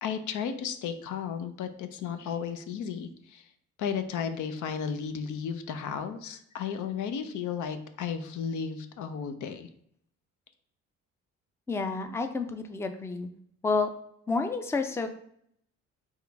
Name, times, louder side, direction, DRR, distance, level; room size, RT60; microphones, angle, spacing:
voice 1, 0.0-3.4 3.8-9.7, left 7 dB, 75° left, 9 dB, 0.6 m, -34 dB
voice 2, 11.7-13.3 13.6-13.9 14.3-15.1, left 4 dB, 10° left, 7 dB, 0.4 m, -29 dB
3.7 x 3.0 x 4.6 m, 0.70 s
cardioid pair, 90°, 30 cm